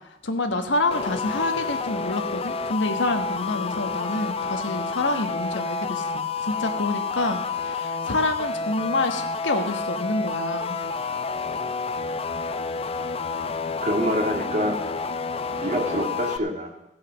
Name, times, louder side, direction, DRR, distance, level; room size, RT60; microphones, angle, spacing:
voice 1, 0.2-10.8, left 2 dB, 90° left, 6 dB, 1.3 m, -27 dB
sound 1, 0.9-16.4, left 4 dB, 35° left, 0.5 m, -29 dB
voice 2, 13.8-14.8 15.6-16.7, equal, 40° right, 1 dB, 2.1 m, -25 dB
16.5 x 6.4 x 6.2 m, 0.91 s
head